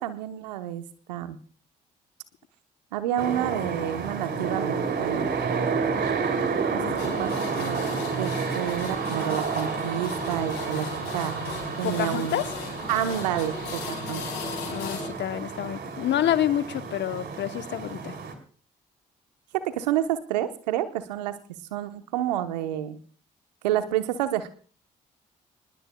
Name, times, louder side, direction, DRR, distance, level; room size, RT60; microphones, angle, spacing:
voice 1, 0.0-1.4 2.9-5.3 6.7-7.3 7.6-7.8 8.2-10.9 11.1-11.4 11.8-12.4 12.9-14.2 19.6-21.4 21.7-23.0 23.6-24.5, right 12 dB, 85° right, 10 dB, 1.1 m, -29 dB
sound 1, 3.2-18.3, right 5 dB, 55° right, 3.1 m, -30 dB
voice 2, 6.8-7.5 11.8-12.5 14.7-18.1, left 11 dB, 60° left, 12 dB, 1.0 m, -28 dB
sound 2, 7.0-15.1, left 5 dB, 80° left, 4.8 m, -37 dB
24.5 x 20.0 x 2.3 m, 0.42 s
hypercardioid pair, 40°, 21 cm